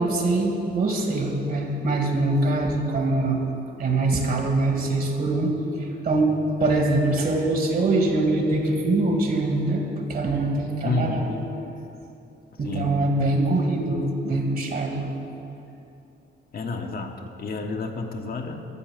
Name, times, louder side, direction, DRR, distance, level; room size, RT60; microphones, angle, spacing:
voice 1, 0.0-3.4 3.8-6.3 6.6-11.3 12.6-15.1, right 2 dB, 45° right, 2 dB, 2.1 m, -23 dB
voice 2, 10.8-11.5 12.6-12.9 16.5-18.6, left 3 dB, 50° left, 3 dB, 1.2 m, -30 dB
12.5 x 7.3 x 7.4 m, 2.8 s
cardioid pair, 90°, 20 cm